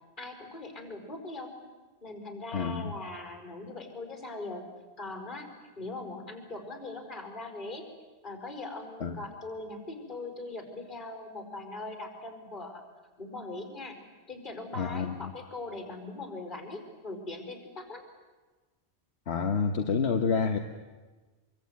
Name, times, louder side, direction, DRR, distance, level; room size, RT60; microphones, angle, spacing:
voice 1, 0.2-1.5 2.0-4.6 5.0-5.5 5.7-7.8 8.2-12.8 13.2-14.0 14.3-18.0, left 2 dB, 45° left, 4 dB, 5.2 m, -40 dB
voice 2, 2.5-2.9 9.0-9.2 14.7-15.3 19.3-20.6, left 5 dB, 75° left, 4 dB, 1.5 m, -28 dB
25.0 x 23.5 x 9.4 m, 1.3 s
omnidirectional pair, 1.1 m